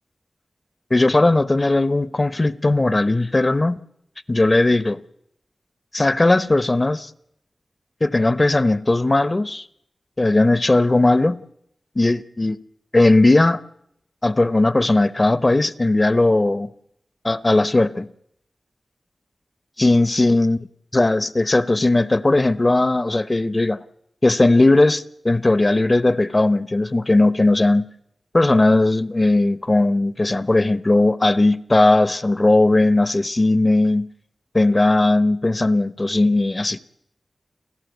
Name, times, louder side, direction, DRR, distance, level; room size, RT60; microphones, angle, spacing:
voice 1, 0.9-3.8 4.3-5.0 5.9-7.1 8.0-9.6 10.2-11.4 12.0-12.6 12.9-13.6 14.2-16.7 17.2-18.1 19.8-20.6 20.9-23.8 24.2-27.9 28.3-34.1 34.5-36.8, left 2 dB, 35° left, 0.7 m, -17 dB
30.0 x 11.5 x 8.1 m
cardioid pair, 45°, 0 cm